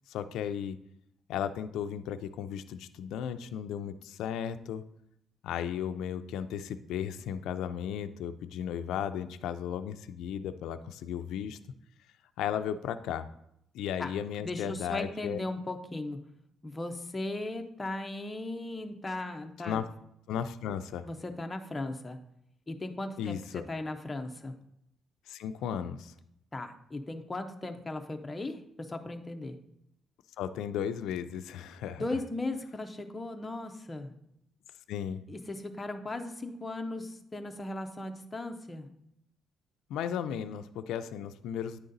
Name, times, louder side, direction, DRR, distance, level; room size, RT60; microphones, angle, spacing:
voice 1, 0.1-0.8 1.3-4.8 5.4-11.6 12.4-13.3 13.7-15.4 19.6-19.8 20.3-21.1 23.2-23.6 25.3-26.1 30.4-32.1 34.9-35.2 39.9-41.8, left 9 dB, 90° left, 11 dB, 0.3 m, -35 dB
voice 2, 14.4-16.2 16.6-19.8 21.1-22.2 22.7-24.5 26.5-29.5 32.0-34.1 35.3-38.9, left 2 dB, 15° left, 5 dB, 0.5 m, -37 dB
9.3 x 3.9 x 3.9 m, 0.78 s
cardioid pair, 175°, 0 cm